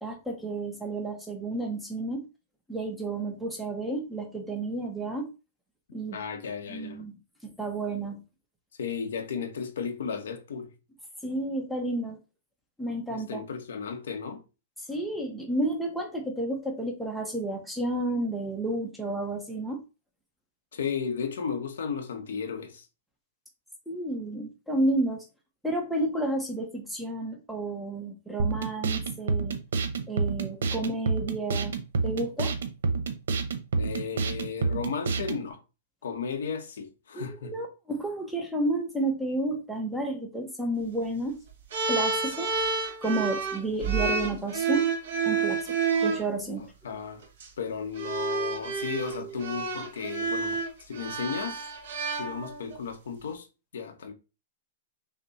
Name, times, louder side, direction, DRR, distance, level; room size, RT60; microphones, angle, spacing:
voice 1, 0.0-2.2 2.7-5.3 5.9-6.2 6.7-8.2 11.2-12.2 12.8-13.4 14.9-19.8 23.9-25.2 25.6-29.6 30.1-31.7 32.0-32.5 37.1-41.4 41.9-42.6 43.0-44.9 45.3-46.7, right 2 dB, ahead, 0.8 m, -31 dB
voice 2, 6.1-7.1 8.8-10.7 13.1-14.4 20.7-22.9 33.8-35.6 36.0-37.5 46.8-47.2 47.6-51.7 52.1-53.5 53.7-54.1, left 6 dB, 90° left, 1.0 m, -34 dB
sound 1, 28.4-35.4, right 4 dB, 85° right, 0.9 m, -29 dB
sound 2, 41.7-46.2 47.2-47.5 48.0-52.8, right 5 dB, 60° right, 1.9 m, -29 dB
5.9 x 2.2 x 4.0 m
hypercardioid pair, 170°, 0 cm